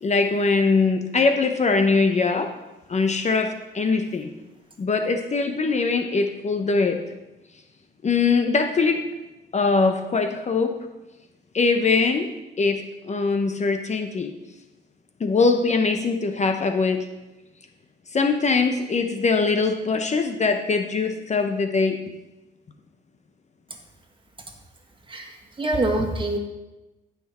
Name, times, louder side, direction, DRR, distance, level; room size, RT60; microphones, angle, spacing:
voice 1, 0.0-2.5 2.9-4.3 4.8-7.0 8.0-9.1 9.5-10.7 11.5-12.3 12.6-14.3 15.2-17.0 18.1-22.0, left 4 dB, 35° left, 6 dB, 0.9 m, -22 dB
voice 2, 25.1-26.4, right 2 dB, 25° right, 3 dB, 1.8 m, -25 dB
15.0 x 6.0 x 4.3 m, 1.0 s
cardioid pair, 90°, 20 cm